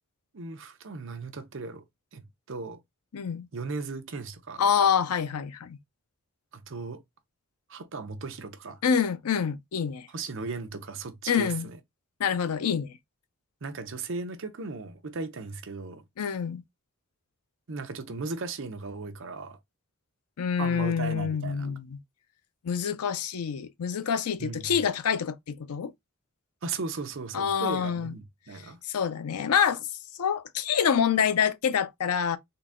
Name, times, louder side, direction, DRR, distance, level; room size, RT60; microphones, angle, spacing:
voice 1, 0.3-1.8 2.1-2.8 3.5-4.6 6.5-7.0 7.7-8.8 10.1-11.8 13.6-16.0 17.7-19.6 20.6-21.8 24.4-24.7 26.6-28.8, right 4 dB, 60° right, 0.7 m, -36 dB
voice 2, 3.1-3.5 4.6-5.8 8.8-10.1 11.3-11.7 12.2-12.9 16.2-16.6 20.4-22.0 22.6-25.9 27.3-28.1 28.9-29.9 30.2-32.4, left 7 dB, 90° left, 0.5 m, -26 dB
3.8 x 2.2 x 3.6 m
head